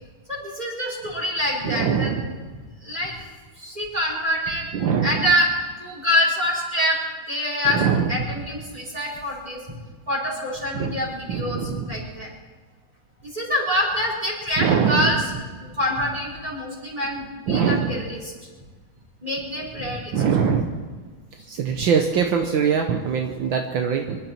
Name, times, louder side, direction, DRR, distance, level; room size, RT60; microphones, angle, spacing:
voice 1, 0.3-2.1 2.8-3.1 3.6-4.7 5.0-5.5 5.8-7.0 7.3-7.8 8.1-9.6 10.1-12.3 13.3-15.3 15.6-18.3 19.2-20.1, left 1 dB, 20° right, -4 dB, 4.7 m, -25 dB
voice 2, 1.6-2.3 4.7-5.3 7.7-8.3 10.7-11.0 11.3-11.9 14.6-15.4 17.5-17.9 20.1-20.7 21.5-24.2, right 6 dB, 70° right, 4 dB, 1.7 m, -23 dB
25.5 x 12.5 x 4.5 m, 1.4 s
omnidirectional pair, 2.2 m